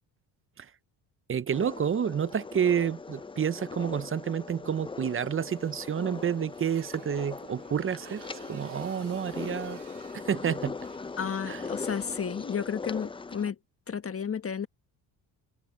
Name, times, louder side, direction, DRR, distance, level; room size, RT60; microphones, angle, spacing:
voice 1, 1.3-9.8 10.1-10.8 11.5-11.6, right 8 dB, 30° right, 0.7 m, -29 dB
sound 1, 1.5-13.5, left 4 dB, 10° left, 0.5 m, -40 dB
Motorcycle, 5.2-11.9, right 11 dB, 65° right, 3.5 m, -55 dB
voice 2, 11.2-13.5 13.9-14.7, left 7 dB, 30° left, 1.3 m, -32 dB
cardioid pair, 85°, 45 cm